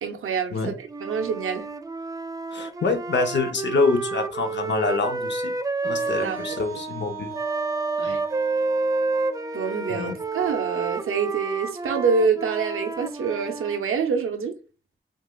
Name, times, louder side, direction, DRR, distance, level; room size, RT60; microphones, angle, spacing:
voice 1, 0.0-1.7 6.0-6.6 7.0-7.1 8.0-8.2 9.5-14.6, right 5 dB, 85° right, 0.6 m, -26 dB
Wind instrument woodwind instrument, 0.9-6.6 7.3-13.8, right 3 dB, 15° right, 0.3 m, -29 dB
voice 2, 2.5-5.5 5.8-7.3 8.1-8.2 9.9-10.1, left 3 dB, 60° left, 0.7 m, -26 dB
Wind instrument woodwind instrument 2, 5.8-11.6, right 2 dB, 45° left, 1.3 m, -39 dB
4.7 x 2.3 x 2.3 m
cardioid pair, 60°, 21 cm